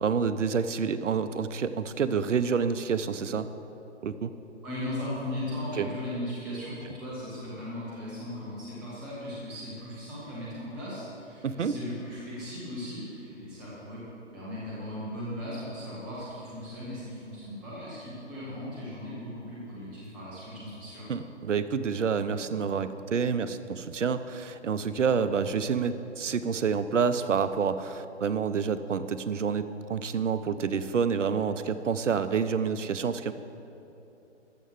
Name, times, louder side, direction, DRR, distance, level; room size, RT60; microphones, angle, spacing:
voice 1, 0.0-3.5 4.0-4.3 5.8-5.9 11.4-11.7 21.1-33.3, right 6 dB, 75° right, 12 dB, 0.8 m, -28 dB
voice 2, 4.6-14.0 14.3-21.1, left 1 dB, ahead, -8 dB, 0.5 m, -37 dB
13.5 x 6.6 x 7.5 m, 2.9 s
hypercardioid pair, 150°, 37 cm